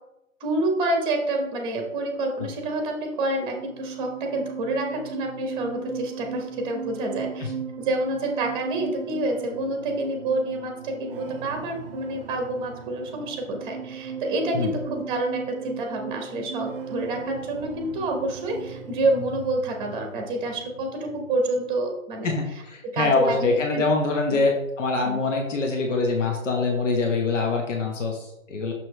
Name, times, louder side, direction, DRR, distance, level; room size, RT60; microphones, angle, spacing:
voice 1, 0.4-7.5 7.8-22.3 22.8-23.8 24.3-24.4 25.0-25.2, right 2 dB, 10° right, 3 dB, 1.0 m, -28 dB
sound 1, 3.2-21.7, right 7 dB, 45° right, 0.5 m, -37 dB
voice 2, 22.2-28.7, left 3 dB, 65° left, 1 dB, 1.4 m, -24 dB
6.3 x 6.0 x 3.2 m, 0.86 s
figure-of-eight pair, 130°, 40 cm